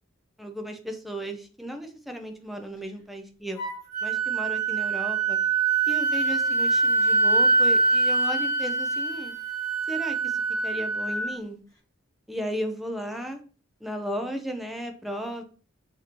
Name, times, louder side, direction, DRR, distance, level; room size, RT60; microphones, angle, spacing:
voice 1, 0.4-3.6 4.0-5.4 5.9-9.3 9.9-10.3 10.6-11.6 12.3-13.4 13.8-15.4, equal, ahead, 4 dB, 0.6 m, -35 dB
Wind instrument woodwind instrument, 3.6-11.3, right 3 dB, 20° left, 1.4 m, -24 dB
6.2 x 2.9 x 3.0 m, 0.39 s
head